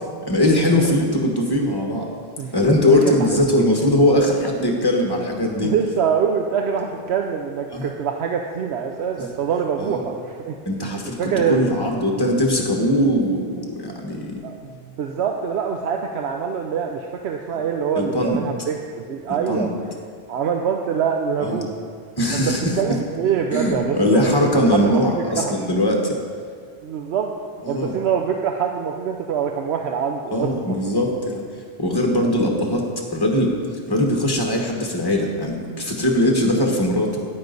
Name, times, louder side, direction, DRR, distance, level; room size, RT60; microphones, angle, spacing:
voice 1, 0.3-2.1 2.5-5.7 7.7-7.9 9.8-10.1 10.6-14.4 17.5-17.6 17.9-18.4 19.3-19.7 21.4-21.7 22.2-23.0 23.5-26.2 27.6-28.0 30.3-31.4 31.8-33.5 33.9-37.2, left 1 dB, 20° left, 1 dB, 1.4 m, -20 dB
voice 2, 2.4-3.0 5.6-10.6 11.2-11.6 14.4-14.7 15.0-19.7 20.3-21.7 22.8-24.3 24.7-25.6 26.8-27.3 27.7-30.5, right 7 dB, 80° right, 3 dB, 0.9 m, -24 dB
9.6 x 9.5 x 4.0 m, 2.2 s
omnidirectional pair, 1.1 m